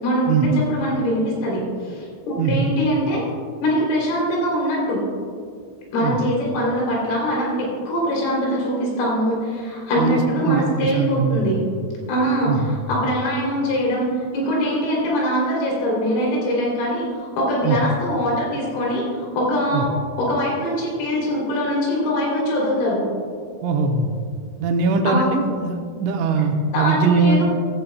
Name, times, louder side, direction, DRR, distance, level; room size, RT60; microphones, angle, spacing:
voice 1, 0.0-3.2 3.6-5.0 5.9-11.6 12.1-14.1 14.3-19.9 20.2-23.0 25.0-25.3 26.7-27.4, equal, 85° left, -3 dB, 5.8 m, -22 dB
voice 2, 2.4-2.7 6.0-6.2 10.0-11.5 12.5-12.7 17.6-17.8 19.7-19.8 23.6-24.2 24.6-27.4, right 4 dB, 80° right, 3 dB, 3.2 m, -21 dB
14.5 x 14.0 x 2.3 m, 2.1 s
omnidirectional pair, 5.5 m